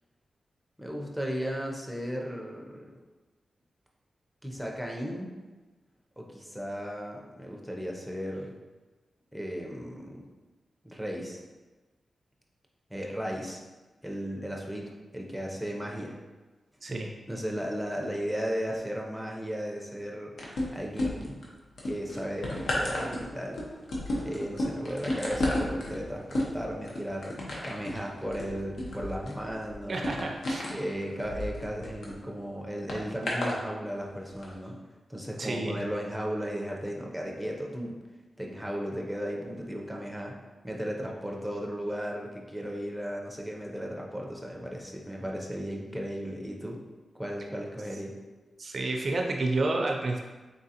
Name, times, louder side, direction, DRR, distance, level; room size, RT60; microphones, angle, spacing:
voice 1, 0.8-2.9 4.4-5.4 6.2-8.5 9.3-10.2 10.8-11.4 12.9-13.6 14.0-16.2 17.3-20.3 20.7-21.4 21.8-23.6 24.2-27.4 27.6-30.2 30.7-34.8 35.1-38.0 38.4-40.3 40.6-46.8 47.1-48.1, equal, ahead, -1 dB, 0.6 m, -35 dB
voice 2, 16.8-17.1 29.9-30.7 35.4-35.8 48.6-50.2, right 2 dB, 45° right, 2 dB, 0.4 m, -30 dB
sound 1, 20.4-21.4 21.8-32.1 32.9-33.6 34.3-34.4, left 1 dB, 75° left, 0.8 m, -33 dB
3.8 x 3.7 x 2.8 m, 1.2 s
wide cardioid pair, 145°, 0 cm